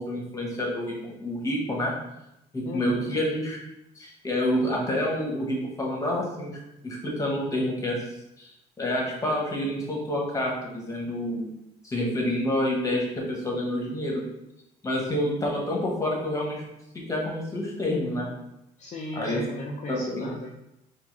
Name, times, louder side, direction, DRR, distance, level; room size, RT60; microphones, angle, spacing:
voice 1, 0.0-1.9 2.5-3.6 4.0-6.5 6.8-8.0 8.4-8.5 8.8-11.5 11.8-14.2 14.8-16.6 17.1-18.3 19.1-19.4 19.9-20.3, left 1 dB, 20° left, -2 dB, 1.5 m, -28 dB
voice 2, 2.6-3.1 18.8-20.5, left 2 dB, 45° left, -1 dB, 0.6 m, -36 dB
4.5 x 2.8 x 4.1 m, 0.86 s
cardioid pair, 110°, 17 cm